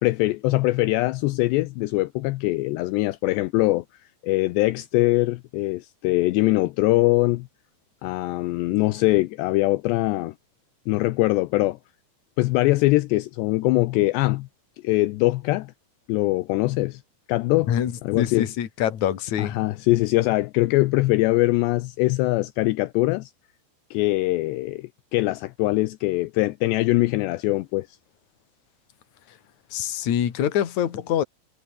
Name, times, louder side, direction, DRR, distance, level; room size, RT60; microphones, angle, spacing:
voice 1, 0.0-3.8 4.2-7.5 8.0-10.3 10.9-11.8 12.4-14.5 14.8-15.7 16.1-17.0 17.3-17.7 18.0-18.5 19.4-23.3 23.9-27.9, left 20 dB, 80° left, 2.7 m, -22 dB
voice 2, 17.7-19.5 29.7-31.2, left 10 dB, 50° left, 2.8 m, -25 dB
omnidirectional pair, 5.4 m